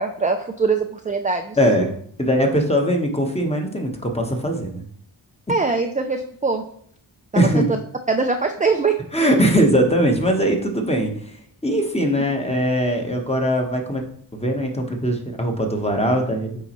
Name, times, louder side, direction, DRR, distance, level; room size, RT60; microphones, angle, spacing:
voice 1, 0.0-1.6 5.5-6.6 7.3-7.6 8.1-8.9, right 4 dB, 20° right, 4 dB, 0.4 m, -22 dB
voice 2, 1.6-1.9 2.2-4.8 7.4-7.7 9.1-11.3 11.6-14.0 14.3-16.5, equal, 15° left, 3 dB, 1.0 m, -20 dB
8.3 x 4.0 x 3.0 m, 0.62 s
wide cardioid pair, 75°, 46 cm